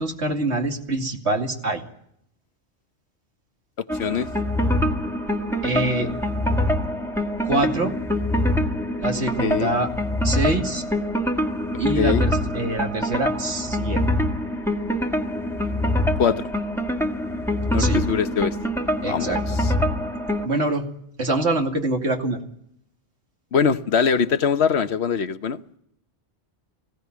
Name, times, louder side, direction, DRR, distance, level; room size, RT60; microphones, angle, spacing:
voice 1, 0.0-1.8 5.6-6.1 7.4-7.9 9.0-9.9 10.2-10.8 11.8-14.0 17.8-18.0 19.0-19.4 20.4-20.9 21.2-22.4, right 2 dB, 80° right, 3 dB, 2.8 m, -25 dB
sound 1, 3.9-20.5, left 1 dB, ahead, 1.6 m, -24 dB
voice 2, 9.4-9.7 11.9-12.2 16.2-16.4 17.7-18.5 19.1-19.7 23.5-25.6, left 6 dB, 75° left, 11 dB, 1.3 m, -22 dB
20.0 x 17.0 x 9.5 m, 0.72 s
omnidirectional pair, 1.1 m